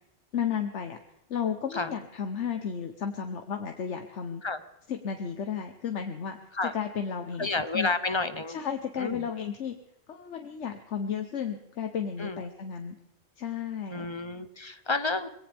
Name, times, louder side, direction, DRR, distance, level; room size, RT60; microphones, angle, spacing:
voice 1, 0.3-1.0 1.3-4.4 4.9-6.4 6.7-7.9 8.5-9.7 10.1-12.9 13.4-14.1, left 7 dB, 90° left, 5 dB, 1.3 m, -33 dB
voice 2, 7.4-8.6 9.0-9.3 12.2-12.4 13.9-15.3, left 3 dB, 30° left, 11 dB, 0.7 m, -30 dB
22.5 x 17.5 x 3.5 m, 0.83 s
omnidirectional pair, 1.2 m